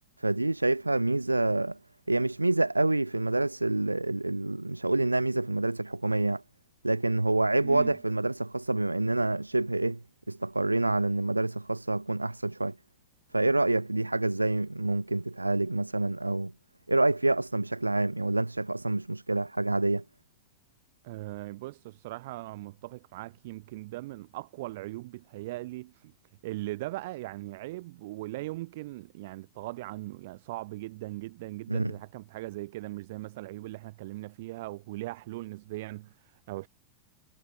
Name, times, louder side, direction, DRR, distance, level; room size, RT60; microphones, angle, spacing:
voice 1, 0.2-1.8 2.1-6.4 6.8-10.0 10.3-12.7 13.3-16.5 16.9-20.0 31.7-31.9, right 2 dB, 85° right, 3.0 m, -27 dB
voice 2, 7.6-8.0 21.0-26.1 26.4-36.7, right 18 dB, 50° right, 7.9 m, -39 dB
figure-of-eight pair, 90°, 0 cm